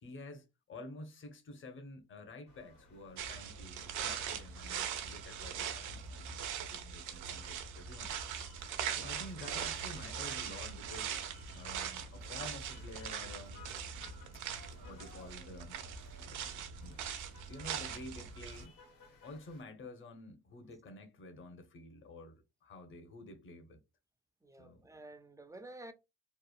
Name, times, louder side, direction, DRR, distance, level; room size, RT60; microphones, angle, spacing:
voice 1, 0.0-8.2 8.9-11.2 11.5-13.6 14.8-15.8 16.8-17.0 17.5-18.7 19.2-23.8 24.6-24.8, left 2 dB, 40° left, 0.8 m, -50 dB
sound 1, 2.5-19.6, left 3 dB, 85° left, 1.5 m, -60 dB
sound 2, 3.2-18.7, right 8 dB, 80° right, 0.6 m, -41 dB
voice 2, 24.4-25.9, right 2 dB, 10° right, 0.3 m, -51 dB
3.1 x 2.1 x 2.4 m
cardioid pair, 90°, 30 cm